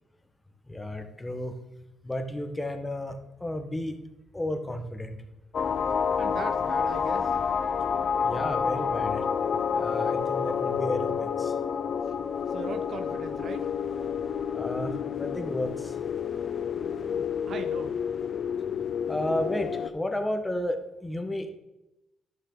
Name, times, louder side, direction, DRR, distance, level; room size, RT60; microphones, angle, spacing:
voice 1, 0.7-1.5 2.0-4.0 4.3-5.2 8.2-9.3 9.7-11.5 14.5-15.9 19.1-21.5, left 1 dB, 15° left, 6 dB, 1.2 m, -32 dB
sound 1, 5.5-19.9, left 7 dB, 50° left, 0.4 m, -29 dB
voice 2, 6.2-7.3 12.5-13.7 17.2-18.0, right 5 dB, 60° right, 8 dB, 0.7 m, -39 dB
11.0 x 6.5 x 3.9 m, 0.93 s
cardioid pair, 90°, 0 cm